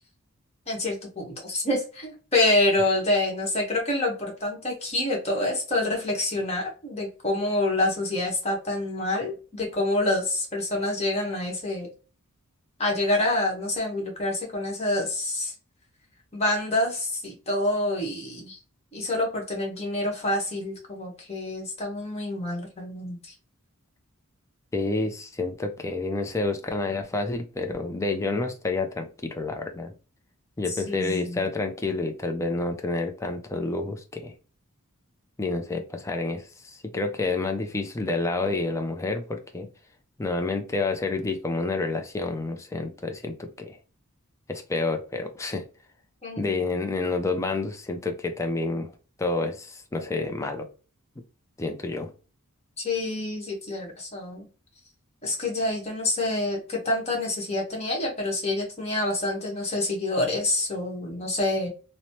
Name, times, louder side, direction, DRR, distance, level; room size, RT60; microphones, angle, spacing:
voice 1, 0.7-11.9 12.8-15.5 16.3-18.6 18.9-23.3 30.9-31.4 46.2-46.6 52.8-54.5 55.2-61.7, left 2 dB, 30° left, 1.1 m, -27 dB
voice 2, 24.7-29.9 30.6-34.3 35.4-39.7 40.2-43.8 44.5-45.7 46.4-48.9 49.2-50.7 51.6-52.1, left 3 dB, 15° left, 0.4 m, -29 dB
3.0 x 2.0 x 2.7 m
head